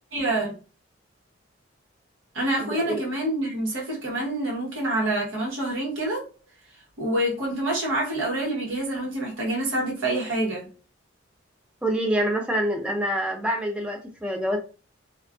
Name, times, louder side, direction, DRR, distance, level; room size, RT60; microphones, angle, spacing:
voice 1, 0.1-0.6 2.3-6.2 7.0-10.7, right 1 dB, 75° right, 1.0 m, -27 dB
voice 2, 2.6-3.0 11.8-14.6, equal, 5° right, 0.3 m, -26 dB
2.4 x 2.3 x 2.3 m
head